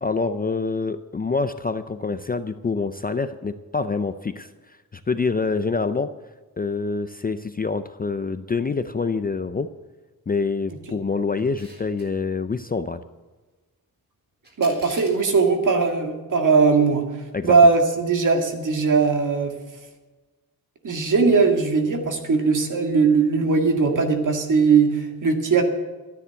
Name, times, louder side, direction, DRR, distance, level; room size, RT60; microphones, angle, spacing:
voice 1, 0.0-6.1 6.6-9.7 10.3-13.0 17.3-17.6, left 4 dB, 25° left, 10 dB, 0.4 m, -26 dB
Camera, 11.4-12.1 14.4-15.2, right 1 dB, 25° right, 3.9 m, -43 dB
voice 2, 14.6-17.0 17.4-19.5 20.8-25.6, right 4 dB, 55° right, 4 dB, 2.1 m, -19 dB
13.5 x 9.8 x 8.2 m, 1.3 s
wide cardioid pair, 180°, 38 cm